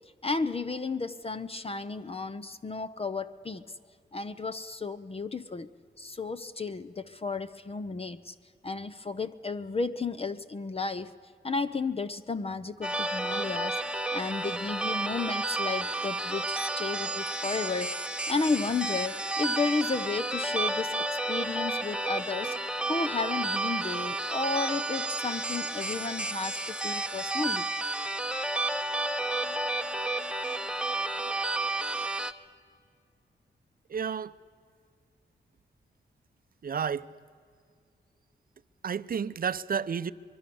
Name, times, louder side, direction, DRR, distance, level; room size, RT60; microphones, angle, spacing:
voice 1, 0.2-3.6 4.1-5.7 6.0-8.3 8.6-11.1 11.4-27.7, left 4 dB, 30° left, 0.7 m, -33 dB
sound 1, 12.8-32.3, right 2 dB, 5° right, 0.9 m, -31 dB
voice 2, 33.9-34.3 36.6-37.1 38.8-40.1, right 7 dB, 50° right, 0.7 m, -31 dB
24.0 x 22.5 x 7.0 m
wide cardioid pair, 110°, 19 cm